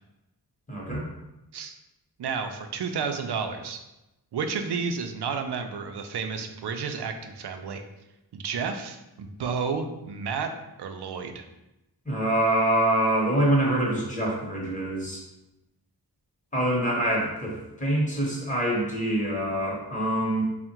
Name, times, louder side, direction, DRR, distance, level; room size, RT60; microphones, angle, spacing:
voice 1, 0.7-1.1 12.0-15.2 16.5-20.4, right 1 dB, 20° left, -3 dB, 1.0 m, -25 dB
voice 2, 2.2-3.8 4.3-7.8 8.3-10.5 10.8-11.4, right 5 dB, 80° right, 6 dB, 0.5 m, -31 dB
3.5 x 2.1 x 4.3 m, 0.94 s
wide cardioid pair, 110°, 39 cm